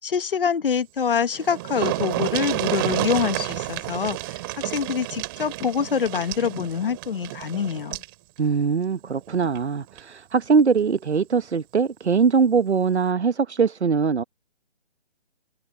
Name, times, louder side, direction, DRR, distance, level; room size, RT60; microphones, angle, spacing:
voice 1, 0.0-8.0, left 7 dB, 55° left, 1.2 m, -25 dB
sound 1, 1.0-1.1 1.3-8.1 9.4-9.6 10.0-10.1, right 21 dB, 20° right, 3.2 m, -30 dB
voice 2, 8.4-14.2, right 5 dB, 85° right, 1.2 m, -21 dB
hypercardioid pair, 160°, 33 cm